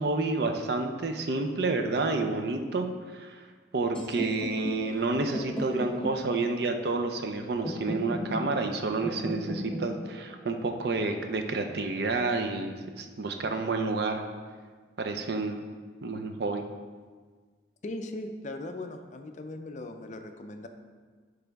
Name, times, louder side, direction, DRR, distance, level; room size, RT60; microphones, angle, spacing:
voice 1, 0.0-3.4 3.7-14.2 15.0-15.6 16.0-16.6, right 3 dB, 55° right, 5 dB, 0.5 m, -29 dB
sound 1, 3.9-11.9, equal, 5° left, 0.7 m, -37 dB
voice 2, 17.8-20.7, left 2 dB, 40° left, 6 dB, 0.4 m, -39 dB
10.0 x 3.4 x 3.5 m, 1.5 s
head